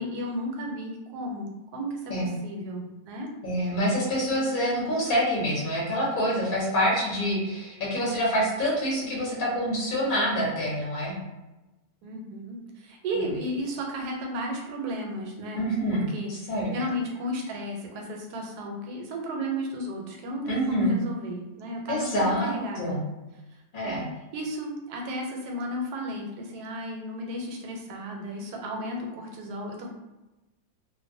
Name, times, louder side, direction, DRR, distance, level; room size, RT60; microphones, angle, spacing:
voice 1, 0.0-3.3 12.0-23.0 23.8-24.1 24.3-29.9, equal, 85° right, 1 dB, 1.1 m, -34 dB
voice 2, 3.4-11.1 15.5-16.0 16.3-16.7 20.4-20.9 21.9-22.5 22.8-23.0 23.7-24.0, equal, 45° left, -5 dB, 0.7 m, -26 dB
2.5 x 2.1 x 2.6 m, 1.0 s
omnidirectional pair, 1.6 m